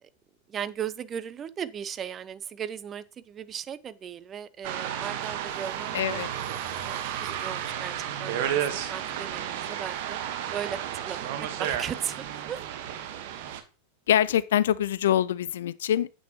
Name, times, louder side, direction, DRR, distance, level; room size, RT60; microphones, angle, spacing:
voice 1, 0.5-6.2 6.8-7.9 8.2-10.2 10.5-12.2 12.5-12.6, right 8 dB, 25° right, 0.7 m, -37 dB
sound 1, 4.6-13.6, right 10 dB, 50° right, 1.2 m, -32 dB
voice 2, 5.9-6.3 14.1-16.1, left 11 dB, 60° left, 0.4 m, -24 dB
9.5 x 7.8 x 2.9 m
figure-of-eight pair, 90°, 0 cm